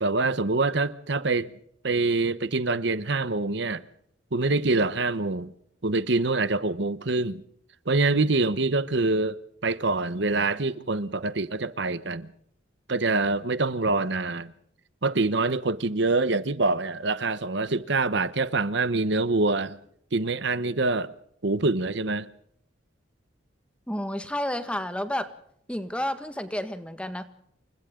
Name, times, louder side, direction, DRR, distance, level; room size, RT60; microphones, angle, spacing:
voice 1, 0.0-1.5 1.8-3.8 4.3-5.5 5.8-7.4 7.9-12.3 12.9-14.5 15.0-19.8 20.1-21.1 21.4-22.3, right 3 dB, 60° right, 1.0 m, -25 dB
voice 2, 23.9-25.3 25.7-27.2, left 1 dB, 5° left, 1.6 m, -30 dB
29.0 x 24.0 x 3.8 m
head